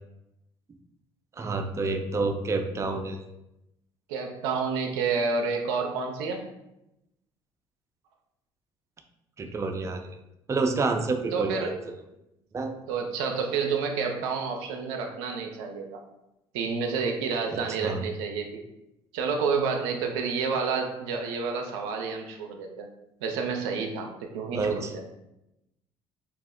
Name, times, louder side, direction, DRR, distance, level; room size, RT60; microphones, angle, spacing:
voice 1, 1.3-3.3 9.4-10.2 10.5-11.7 12.5-12.7 17.5-18.1 24.5-24.9, right 3 dB, 25° right, 5 dB, 0.4 m, -28 dB
voice 2, 4.1-6.4 11.3-11.8 12.9-16.0 16.5-18.6 19.1-22.9 23.2-25.0, right 5 dB, 80° right, 3 dB, 0.4 m, -29 dB
2.8 x 2.0 x 3.6 m, 0.89 s
hypercardioid pair, 60°, 12 cm